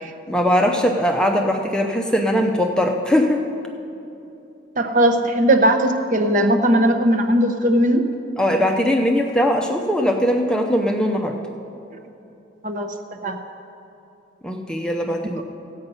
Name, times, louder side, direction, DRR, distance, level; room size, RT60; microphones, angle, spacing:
voice 1, 0.3-3.5 8.4-11.4 14.4-15.4, equal, 5° left, 2 dB, 0.6 m, -20 dB
voice 2, 4.8-8.1 12.6-12.9 13.2-13.4 15.4-15.5, right 1 dB, 40° right, 5 dB, 0.8 m, -18 dB
15.5 x 8.0 x 5.5 m, 2.9 s
head